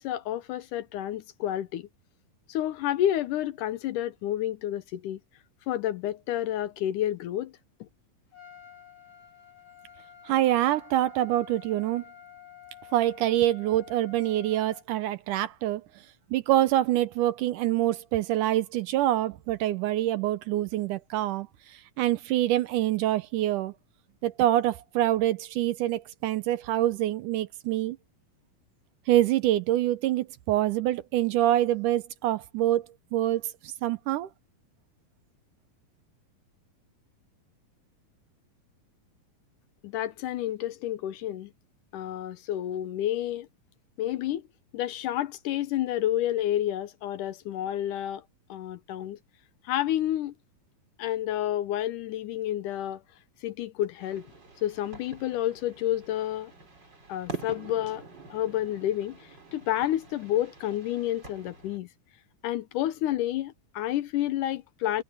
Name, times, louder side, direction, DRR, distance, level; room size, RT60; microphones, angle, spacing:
voice 1, 0.0-1.9 2.5-5.2 5.7-7.5 7.8-7.9 39.8-41.5 41.9-43.5 44.0-44.4 44.7-48.2 48.5-49.2 49.7-50.3 51.0-53.0 53.4-54.2 54.6-56.5 57.1-58.0 58.3-61.9 62.4-65.0, left 12 dB, 75° left, 2.2 m, -30 dB
Trumpet, 8.3-14.8, left 9 dB, 55° left, 4.3 m, -50 dB
voice 2, 10.3-12.0 12.9-15.8 16.3-23.7 24.2-28.0 29.1-32.8 33.1-34.3, right 13 dB, 75° right, 2.1 m, -26 dB
sound 1, 54.0-61.8, right 4 dB, 30° right, 5.2 m, -45 dB
omnidirectional pair, 4.0 m